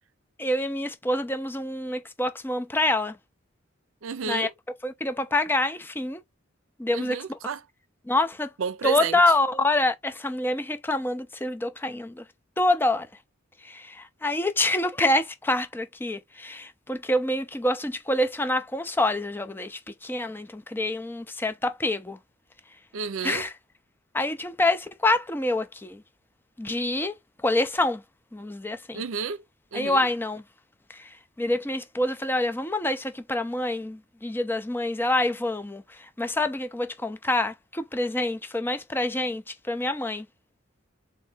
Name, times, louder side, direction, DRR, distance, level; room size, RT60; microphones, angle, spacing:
voice 1, 0.4-3.2 4.3-4.5 4.8-6.2 6.8-7.2 8.1-8.5 8.8-12.2 12.6-13.1 13.6-22.2 23.2-23.5 24.1-26.0 26.6-27.1 27.4-28.0 28.3-29.0 29.7-30.4 30.9-31.1 31.4-40.3, left 2 dB, 10° left, 0.4 m, -26 dB
voice 2, 4.0-4.5 6.9-7.6 8.6-9.2 22.9-23.5 28.9-29.4 29.7-30.1, right 6 dB, 80° right, 0.5 m, -31 dB
3.8 x 2.7 x 3.4 m
head